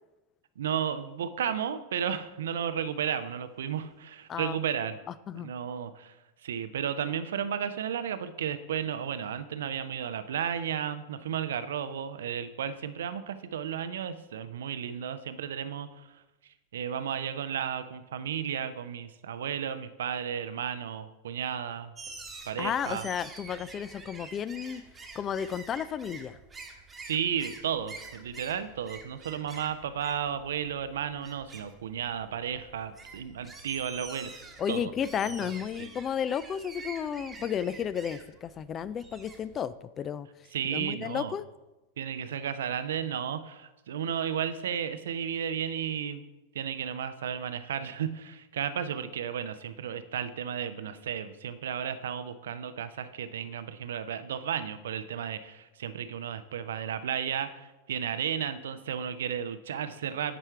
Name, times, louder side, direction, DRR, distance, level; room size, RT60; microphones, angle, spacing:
voice 1, 0.6-5.0 5.3-6.2 6.4-21.9 22.4-23.1 27.0-34.9 35.4-35.5 35.8-35.9 40.5-41.3 42.0-46.2 46.5-60.4, right 8 dB, 60° right, 12 dB, 0.5 m, -33 dB
sound 1, 22.0-39.6, right 4 dB, 15° right, 1.1 m, -47 dB
voice 2, 22.6-24.8 25.1-26.4 34.6-40.3 40.7-41.5, left 8 dB, 25° left, 16 dB, 0.3 m, -33 dB
10.0 x 4.4 x 4.6 m, 1.0 s
figure-of-eight pair, 90°, 0 cm